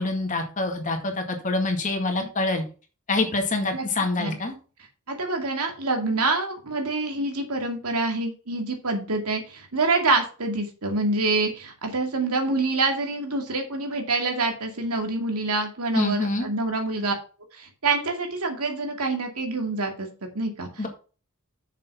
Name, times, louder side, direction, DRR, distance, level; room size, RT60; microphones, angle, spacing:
voice 1, 0.0-2.6 3.1-4.5 15.9-16.5 20.8-20.9, left 2 dB, 35° left, 4 dB, 2.1 m, -26 dB
voice 2, 5.1-17.1 17.5-20.1 20.3-20.9, right 3 dB, 80° right, 4 dB, 2.4 m, -26 dB
6.7 x 6.5 x 5.9 m, 0.35 s
head